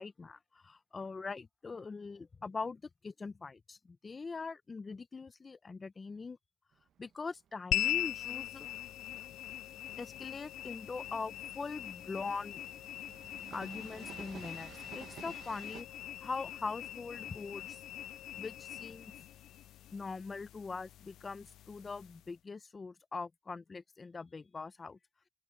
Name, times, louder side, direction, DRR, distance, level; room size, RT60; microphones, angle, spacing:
voice 1, 0.0-6.4 7.0-8.7 10.0-12.6 13.5-15.9 16.2-17.8 18.4-19.1 19.9-25.0, left 4 dB, 30° left, 1.0 m, -42 dB
Train, 6.7-15.8, right 9 dB, 65° right, 1.3 m, -54 dB
sound 1, 7.7-22.3, left 13 dB, 80° left, 0.6 m, -41 dB
open air
cardioid pair, 90°, 0 cm